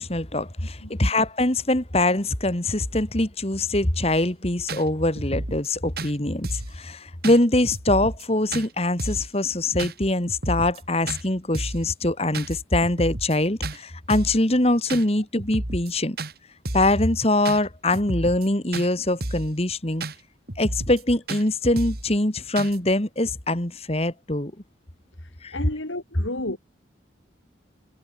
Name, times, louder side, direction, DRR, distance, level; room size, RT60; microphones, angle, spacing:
voice 1, 0.0-16.2 16.7-20.0 20.6-24.5 25.4-25.6, left 1 dB, 30° left, 2.4 m, -23 dB
sound 1, 4.1-4.2 4.7-4.8 5.2-5.7 6.0-6.1 6.4-6.7 7.2-7.4 7.7-8.2 8.5-8.7 9.0-9.3 9.8-9.9 10.3-10.8 11.1-11.2 11.5-11.9 12.3-12.6 12.8-13.4 13.6-13.8 14.1-14.4 14.9-15.0 15.4-15.9 16.2-16.3 16.6-17.0 17.4-17.6 17.9-18.5 18.7-18.9 19.2-19.5 20.0-20.1 20.5-21.0 21.3-21.4 21.8-22.1 22.6-22.8, right 2 dB, 50° right, 3.3 m, -31 dB
voice 2, 25.5-26.6, left 1 dB, 85° left, 4.1 m, -31 dB
head